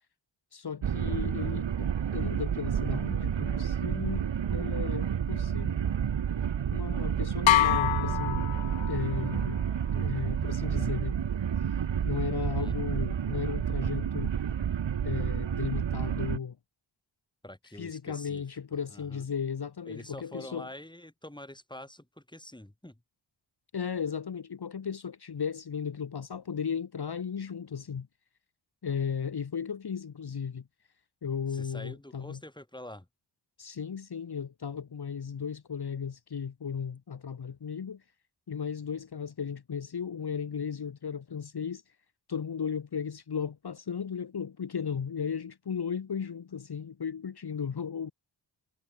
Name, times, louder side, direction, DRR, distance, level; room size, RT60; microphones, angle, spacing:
voice 1, 0.5-5.8 6.7-8.5 8.9-9.6 9.9-11.2 12.0-14.3 15.0-16.6 17.7-20.7 23.7-28.1 28.8-30.7 31.2-32.4 33.6-38.0 38.5-42.0 42.3-48.1, left 7 dB, 50° left, 1.8 m, -35 dB
sound 1, 0.8-16.4, right 8 dB, 65° right, 1.6 m, -30 dB
sound 2, 7.5-9.2, left 15 dB, 75° left, 0.5 m, -26 dB
voice 2, 12.4-12.8 17.4-19.3 19.9-23.0 31.5-33.1, left 1 dB, 10° left, 7.4 m, -46 dB
cardioid pair, 60°, 48 cm